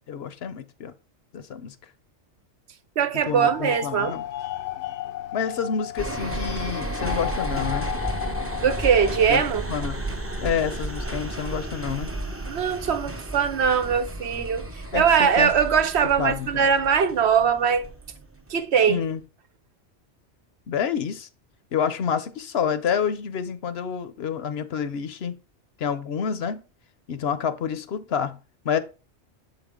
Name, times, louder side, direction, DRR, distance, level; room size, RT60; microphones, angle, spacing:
voice 1, 0.1-0.9 1.3-1.7 3.2-4.2 5.3-7.9 9.3-9.4 9.7-10.0 10.4-12.1 14.9-15.1 15.4-15.5 16.2-16.7 18.9-19.2 20.7-21.3 21.7-25.3 25.8-26.6 27.1-28.4 28.6-28.8, left 7 dB, 65° left, 0.9 m, -28 dB
voice 2, 3.0-4.1 8.6-9.7 12.5-17.9 18.5-19.0, right 7 dB, 70° right, 1.0 m, -21 dB
sound 1, 3.2-9.3, left 13 dB, 90° left, 1.0 m, -34 dB
sound 2, 6.0-18.5 18.9-19.0, right 2 dB, 15° right, 0.7 m, -33 dB
7.7 x 5.0 x 3.7 m
omnidirectional pair, 1.2 m